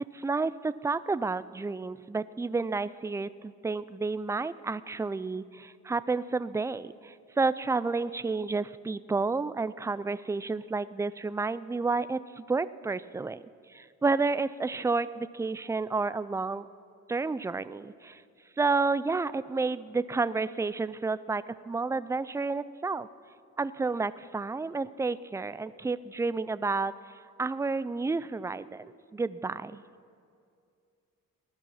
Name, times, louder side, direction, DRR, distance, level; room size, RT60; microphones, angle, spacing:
voice 1, 0.1-13.4 13.7-16.7 17.1-18.2 18.6-23.1 23.6-26.9 27.4-29.8, right 3 dB, 10° right, 16 dB, 0.4 m, -30 dB
19.5 x 12.0 x 5.7 m, 2.4 s
cardioid pair, 90°, 30 cm